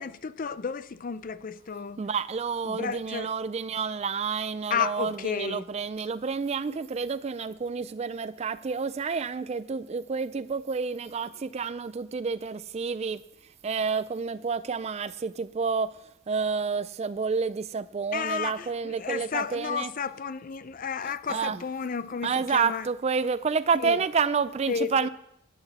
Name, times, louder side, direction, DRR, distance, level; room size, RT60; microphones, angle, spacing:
voice 1, 0.0-2.0 2.6-3.3 4.7-5.6 18.1-22.9 23.8-24.0 24.7-25.1, left 6 dB, 40° left, 14 dB, 0.5 m, -32 dB
voice 2, 2.0-13.2 13.6-15.9 16.3-19.9 21.3-21.6 22.2-25.1, right 5 dB, 30° right, 16 dB, 0.3 m, -29 dB
10.0 x 8.0 x 7.0 m, 0.78 s
head